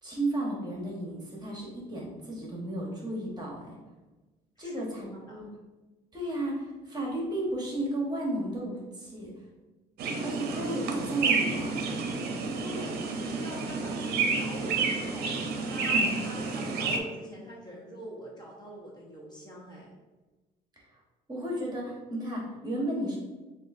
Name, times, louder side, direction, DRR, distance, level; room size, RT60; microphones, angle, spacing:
voice 1, 0.0-3.6 4.6-5.5 6.1-9.3 10.2-11.8 15.8-16.1 21.3-23.2, right 1 dB, 25° right, -3 dB, 1.2 m, -33 dB
voice 2, 5.1-5.4 12.6-15.3 15.6-19.9, equal, 25° left, -3 dB, 1.1 m, -44 dB
sound 1, 10.0-17.0, right 4 dB, 65° right, 0.6 m, -30 dB
6.6 x 2.6 x 2.6 m, 1.2 s
cardioid pair, 110°, 17 cm